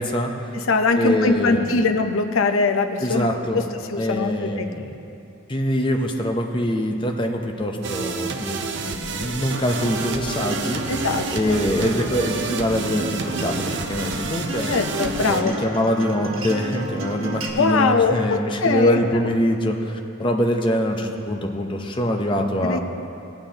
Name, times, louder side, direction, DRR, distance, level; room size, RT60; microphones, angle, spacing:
voice 1, 0.0-0.5 1.0-1.7 3.0-3.7 4.0-4.9 5.5-10.8 11.3-14.7 15.2-22.8, equal, 20° left, 2 dB, 0.7 m, -24 dB
voice 2, 0.5-3.3 3.5-4.7 10.9-11.6 14.7-15.6 17.6-19.3 22.6-22.8, left 3 dB, 70° left, 7 dB, 0.6 m, -22 dB
sound 1, 7.8-15.4, right 5 dB, 55° right, 0.6 m, -30 dB
Acoustic guitar, 9.5-17.5, right 1 dB, 70° right, 1.2 m, -32 dB
16.5 x 9.0 x 2.8 m, 2.6 s
head